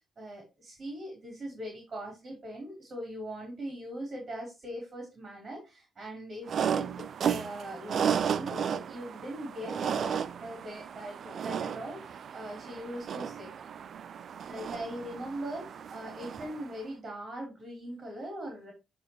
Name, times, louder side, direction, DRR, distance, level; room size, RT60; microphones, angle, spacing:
voice 1, 0.2-13.5 14.5-18.7, right 1 dB, 35° right, 0 dB, 4.0 m, -41 dB
sound 1, 6.5-16.8, right 8 dB, 55° right, 0.5 m, -34 dB
9.9 x 4.4 x 3.1 m, 0.26 s
cardioid pair, 90°, 0 cm